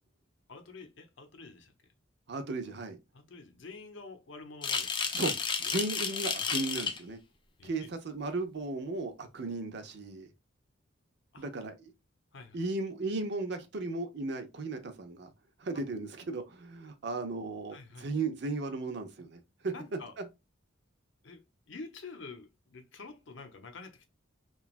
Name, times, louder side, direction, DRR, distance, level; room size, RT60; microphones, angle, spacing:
voice 1, 0.5-1.7 3.1-5.1 7.6-7.9 11.3-11.5 12.3-12.6 17.7-18.1 19.7-20.1 21.2-24.1, left 3 dB, 70° left, 0.6 m, -48 dB
voice 2, 2.3-3.0 5.1-5.3 5.6-7.2 7.6-10.3 11.4-11.7 12.5-15.3 15.6-20.2, right 3 dB, 60° right, 0.5 m, -36 dB
sound 1, 4.6-7.0, left 6 dB, 25° left, 0.3 m, -32 dB
3.0 x 2.3 x 2.4 m
head